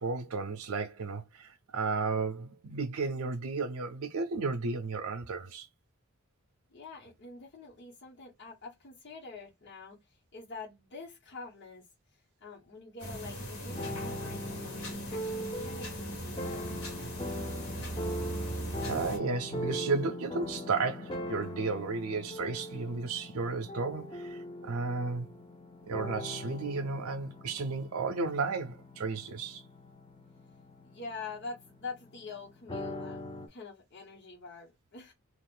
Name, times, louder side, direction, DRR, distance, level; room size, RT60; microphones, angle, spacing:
voice 1, 0.0-5.7 18.8-25.3 25.9-29.6, right 4 dB, 85° right, 0.5 m, -33 dB
voice 2, 6.7-16.7 30.8-35.1, left 4 dB, 55° left, 1.1 m, -46 dB
Room Tone With Ticking Clock, 13.0-19.2, right 1 dB, 85° left, 1.4 m, -39 dB
sound 1, 13.7-33.5, left 1 dB, 25° left, 0.5 m, -41 dB
2.5 x 2.4 x 3.7 m
head